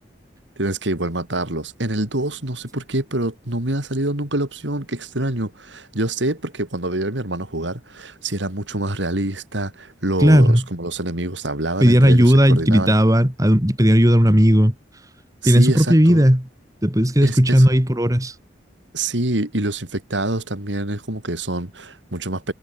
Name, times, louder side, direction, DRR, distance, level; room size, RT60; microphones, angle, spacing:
voice 1, 0.6-13.0 15.4-16.3 17.2-17.7 18.9-22.5, right 1 dB, 85° right, 3.6 m, -26 dB
voice 2, 10.2-10.6 11.8-14.7 15.4-16.4 16.8-18.3, equal, 20° right, 3.0 m, -15 dB
head